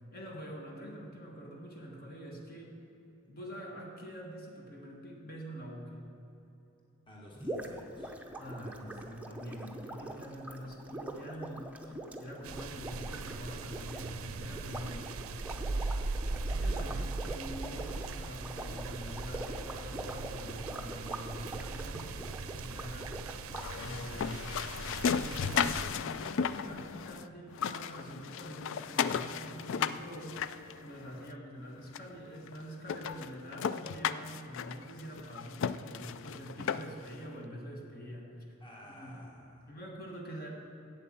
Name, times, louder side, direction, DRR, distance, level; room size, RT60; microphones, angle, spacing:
voice 1, 0.1-2.8 3.3-6.1 8.4-15.1 16.5-23.1 23.8-24.4 25.1-30.4 30.8-39.2 39.7-40.5, equal, 45° left, 0 dB, 1.4 m, -45 dB
voice 2, 7.1-8.1 38.6-39.7, left 1 dB, 25° left, -2 dB, 1.4 m, -52 dB
sound 1, 7.4-23.7, right 1 dB, 5° right, 0.6 m, -43 dB
sound 2, 12.4-25.8, right 3 dB, 70° right, 0.5 m, -39 dB
sound 3, 23.5-27.3 27.5-31.3 32.0-32.1 32.5-32.6 32.9-37.1, left 7 dB, 60° left, 0.3 m, -35 dB
8.3 x 8.1 x 7.3 m, 3.0 s
head